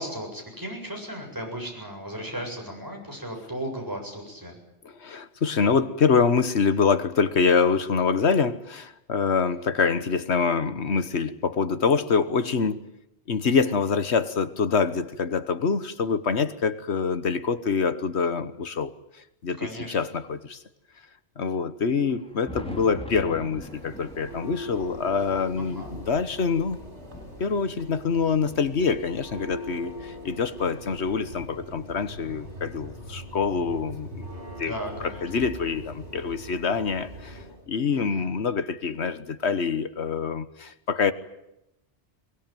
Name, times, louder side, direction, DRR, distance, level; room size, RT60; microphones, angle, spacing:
voice 1, 0.0-4.6 19.6-20.0 25.5-25.9 34.6-35.2 37.9-38.3, equal, 15° right, 7.8 m, -36 dB
voice 2, 5.0-12.8 13.3-18.9 19.4-19.6 19.9-20.6 21.4-26.8 27.4-34.3 34.6-34.7 35.2-41.1, left 5 dB, 70° left, 1.5 m, -25 dB
Thunder, 21.9-30.5 31.2-32.9 34.0-34.1 34.7-34.8 36.6-36.7 38.1-38.2 39.8-39.9, equal, 5° left, 3.1 m, -45 dB
Church bell, 23.4-37.6, left 1 dB, 75° right, 6.0 m, -41 dB
23.0 x 20.5 x 9.2 m
omnidirectional pair, 1.2 m